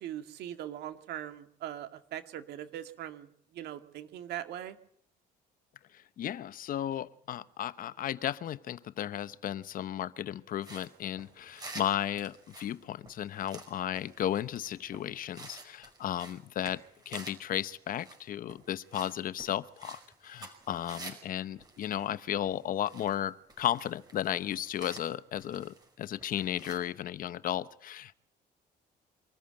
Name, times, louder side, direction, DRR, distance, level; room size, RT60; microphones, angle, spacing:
voice 1, 0.0-4.8, right 11 dB, 75° right, 8 dB, 2.1 m, -41 dB
voice 2, 6.2-28.1, left 11 dB, 55° left, 15 dB, 0.9 m, -34 dB
sound 1, 10.6-21.3 21.6-23.2 23.5-25.9 26.2-26.8, right 2 dB, 25° right, 5.4 m, -50 dB
24.5 x 14.0 x 9.0 m, 0.66 s
cardioid pair, 110°, 17 cm